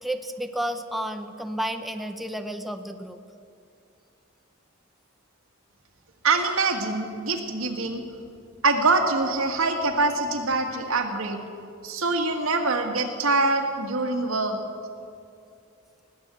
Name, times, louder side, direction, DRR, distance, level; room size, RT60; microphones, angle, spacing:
voice 1, 0.0-3.2, right 1 dB, ahead, 6 dB, 0.7 m, -31 dB
voice 2, 6.2-8.0 8.6-11.4 11.8-14.6, right 3 dB, 90° right, 3 dB, 1.8 m, -24 dB
19.0 x 8.1 x 8.3 m, 2.4 s
head